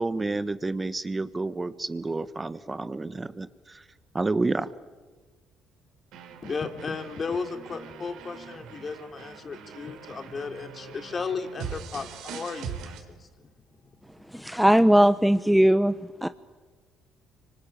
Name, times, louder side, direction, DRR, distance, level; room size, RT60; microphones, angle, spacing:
voice 1, 0.0-3.5 4.1-4.7, right 3 dB, 25° right, 13 dB, 1.4 m, -29 dB
sound 1, 6.1-13.0, right 7 dB, 75° right, 3.7 m, -42 dB
voice 2, 6.4-13.5 14.3-14.4, left 5 dB, 40° left, 7 dB, 3.4 m, -35 dB
voice 3, 14.3-15.9 16.2-16.3, equal, 5° right, 13 dB, 0.9 m, -19 dB
25.0 x 25.0 x 8.9 m, 1.3 s
supercardioid pair, 60°, 0 cm